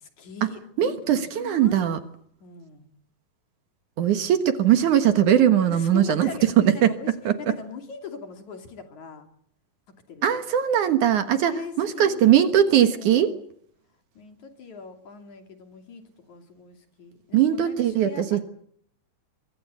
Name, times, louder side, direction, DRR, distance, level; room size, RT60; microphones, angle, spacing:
voice 1, 0.0-1.9 2.4-2.9 5.7-7.1 7.4-9.3 10.1-10.4 11.1-13.4 14.2-18.4, left 6 dB, 55° left, 6 dB, 4.0 m, -41 dB
voice 2, 0.8-2.0 4.0-6.3 6.6-6.9 7.2-7.5 10.2-13.3 17.3-18.4, right 10 dB, 65° right, 10 dB, 2.6 m, -20 dB
24.5 x 23.5 x 8.4 m, 0.67 s
omnidirectional pair, 4.1 m